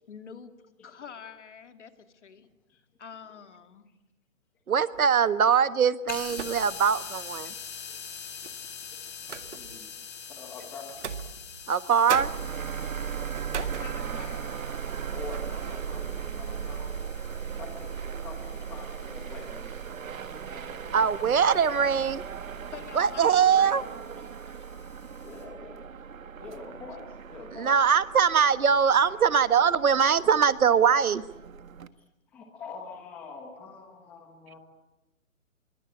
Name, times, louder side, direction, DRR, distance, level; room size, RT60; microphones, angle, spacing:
voice 1, 0.1-2.5 3.0-3.9 13.5-14.5 22.6-23.8, left 6 dB, 55° left, 8 dB, 2.6 m, -46 dB
voice 2, 4.7-7.5 11.7-12.3 20.9-22.2 22.9-23.8 27.5-31.2, right 7 dB, 90° right, 13 dB, 1.6 m, -22 dB
sound 1, 4.9-5.2 6.3-7.0 7.4-7.5 8.4-9.9 10.9-11.8 12.1-14.4 14.8-15.0 15.3-15.7, right 6 dB, 55° right, 1.9 m, -38 dB
sound 2, 6.1-25.4, left 7 dB, 30° left, 4.2 m, -45 dB
voice 3, 9.5-9.9 10.3-10.9 13.9-14.3 15.1-17.0 17.4-21.2 23.5-23.8 24.2-24.3 25.2-25.8 26.4-27.0 27.3-27.8 28.5-28.7 31.0-31.1 32.3-34.6, left 4 dB, 5° left, 3 dB, 1.0 m, -45 dB
sound 3, 12.2-31.9, right 7 dB, 70° right, 1.6 m, -38 dB
25.5 x 23.5 x 8.6 m, 0.97 s
hypercardioid pair, 175°, 41 cm